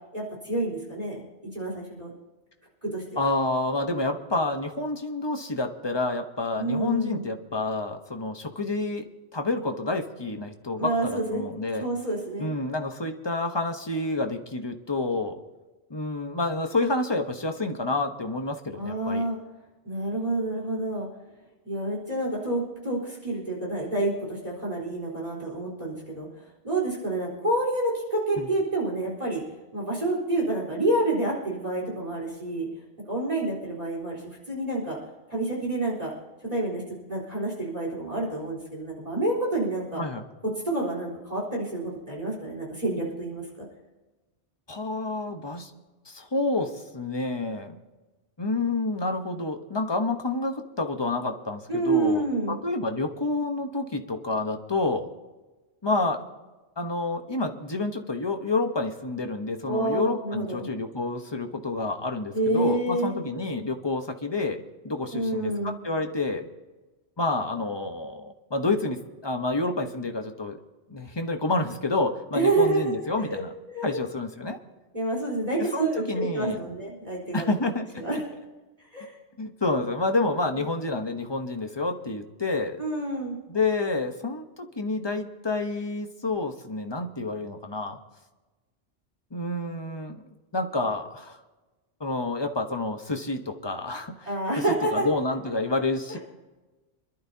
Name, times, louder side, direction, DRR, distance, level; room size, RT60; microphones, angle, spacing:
voice 1, 0.1-1.2 1.5-2.1 2.8-3.3 6.6-7.2 10.8-11.4 11.7-12.6 18.7-19.4 19.8-21.1 21.6-29.4 29.7-32.7 33.1-35.0 35.3-36.1 36.5-40.0 40.6-43.7 51.7-52.6 59.7-60.7 62.3-63.1 65.1-65.8 72.3-74.0 74.9-77.5 78.0-78.2 78.9-79.1 82.8-83.4 94.3-95.1 96.1-96.2, right 2 dB, 35° right, -3 dB, 4.1 m, -28 dB
voice 2, 3.2-9.1 9.3-11.9 12.4-15.4 15.9-19.2 28.4-28.5 40.0-40.2 44.7-45.7 46.1-47.8 48.4-55.1 55.8-56.2 56.8-66.5 67.2-70.6 70.9-73.5 73.8-74.6 75.7-76.8 77.3-78.0 79.4-82.8 83.5-88.0 89.3-91.4 92.0-94.3 94.6-96.2, left 2 dB, 25° left, 5 dB, 1.0 m, -29 dB
26.5 x 12.0 x 2.8 m, 1.2 s
omnidirectional pair, 1.2 m